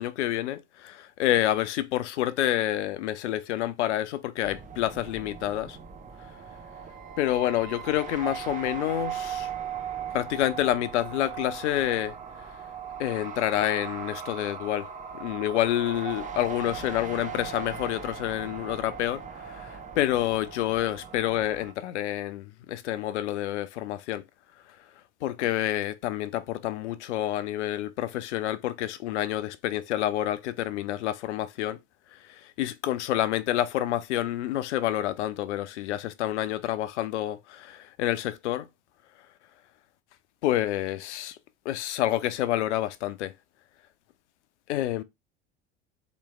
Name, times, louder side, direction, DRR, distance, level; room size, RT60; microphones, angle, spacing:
voice 1, 0.0-5.8 7.2-9.5 10.1-12.2 13.0-14.9 15.2-24.2 25.2-31.8 32.3-38.7 40.4-41.4 41.7-43.3 44.7-45.0, left 13 dB, 70° left, 0.5 m, -28 dB
sound 1, 4.4-21.7, right 7 dB, 20° right, 0.8 m, -38 dB
3.3 x 3.1 x 3.1 m
figure-of-eight pair, 70°, 36 cm